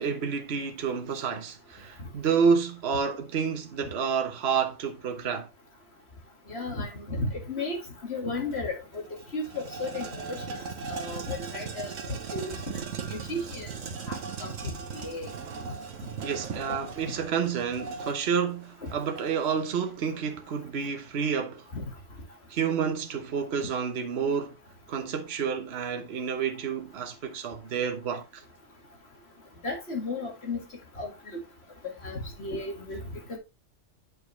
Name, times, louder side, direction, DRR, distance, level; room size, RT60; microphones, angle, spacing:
voice 1, 0.0-5.5 16.2-21.7 22.5-24.6 24.9-28.4, right 6 dB, 55° right, 1.2 m, -29 dB
voice 2, 6.5-7.8 8.1-9.0 9.3-10.6 10.9-12.6 13.0-13.8 14.1-15.3 18.8-18.9 21.7-21.9 29.6-30.6 31.0-31.4 32.0-33.0 33.3-33.4, left 2 dB, 55° left, 2.2 m, -34 dB
sound 1, 8.5-8.6 8.9-19.6, right 5 dB, 80° right, 1.4 m, -38 dB
8.4 x 5.3 x 3.2 m
omnidirectional pair, 1.3 m